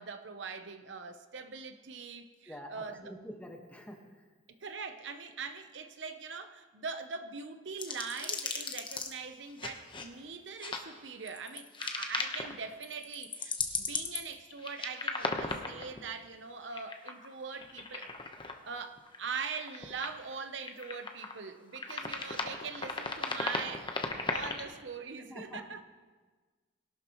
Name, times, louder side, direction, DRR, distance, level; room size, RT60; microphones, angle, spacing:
voice 1, 0.0-3.1 4.5-18.1 18.6-25.8, right 5 dB, 75° right, 8 dB, 0.8 m, -42 dB
voice 2, 2.5-4.0 24.2-24.3 25.3-25.6, equal, 10° left, 1 dB, 1.5 m, -46 dB
sound 1, 7.8-9.1 9.6-10.0 10.6-10.8 11.3-12.5 12.8-16.0 16.6-17.3 17.5-18.5 19.0-19.2 19.5-20.3 20.6-21.4 21.7-24.6, left 4 dB, 25° left, 1.0 m, -36 dB
21.0 x 11.5 x 3.1 m, 1.4 s
head